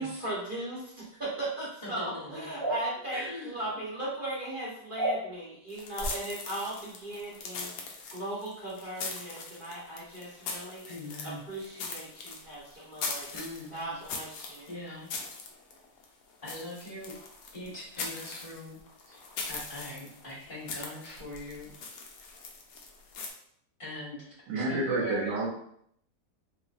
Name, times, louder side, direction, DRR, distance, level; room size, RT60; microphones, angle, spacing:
voice 1, 0.0-10.8 11.2-13.3 13.7-14.7, right 1 dB, 35° right, -7 dB, 1.1 m, -38 dB
voice 2, 1.8-2.4 3.1-3.6 10.8-11.4 12.8-12.9 13.3-13.7 14.7-15.1 16.4-17.1 17.5-18.8 19.1-19.2 19.5-21.7 23.8-24.3 24.5-25.4, left 1 dB, 30° left, -7 dB, 1.4 m, -41 dB
sound 1, 2.6-2.8 5.0-5.2 6.0-6.1, right 1 dB, 5° left, 0.9 m, -29 dB
sound 2, 5.7-23.3, left 4 dB, 70° left, 1.0 m, -41 dB
voice 3, 24.5-25.5, right 2 dB, 75° right, -4 dB, 1.5 m, -29 dB
3.7 x 3.1 x 2.5 m, 0.70 s
omnidirectional pair, 1.9 m